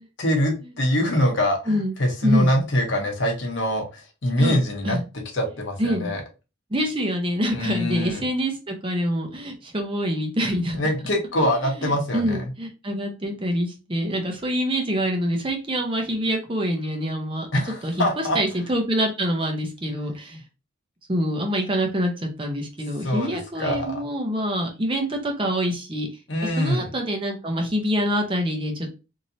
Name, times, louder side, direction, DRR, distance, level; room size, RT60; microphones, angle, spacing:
voice 1, 0.2-6.2 7.5-8.3 10.8-12.5 17.5-18.4 20.3-20.4 23.0-24.0 26.3-26.9, equal, 65° left, 2 dB, 0.9 m, -24 dB
voice 2, 5.8-6.1 6.7-10.8 11.8-17.5 17.8-17.9 18.3-20.4 21.1-26.1 26.6-28.9, equal, 25° right, 3 dB, 0.7 m, -25 dB
3.1 x 2.8 x 2.7 m, 0.30 s
head